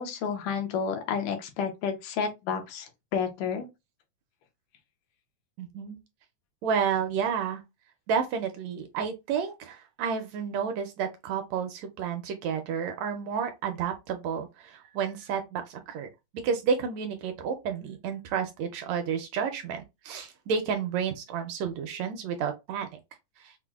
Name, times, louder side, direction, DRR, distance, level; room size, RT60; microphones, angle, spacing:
voice 1, 0.0-3.7, left 6 dB, 85° left, 2.3 m, -31 dB
voice 2, 5.6-6.0 6.6-7.6 8.1-16.1 16.3-22.9, right 7 dB, 80° right, 1.6 m, -31 dB
5.7 x 2.0 x 2.3 m
omnidirectional pair, 3.5 m